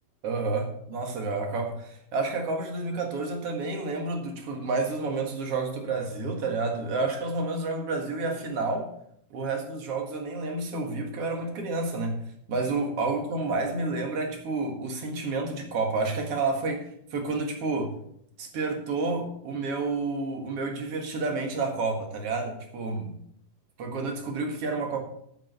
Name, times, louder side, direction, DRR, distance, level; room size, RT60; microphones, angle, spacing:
voice 1, 0.2-8.9 9.3-12.2 12.5-17.9 18.4-23.2 23.8-25.0, right 3 dB, 50° right, 3 dB, 1.9 m, -30 dB
9.0 x 8.1 x 6.7 m, 0.70 s
omnidirectional pair, 4.8 m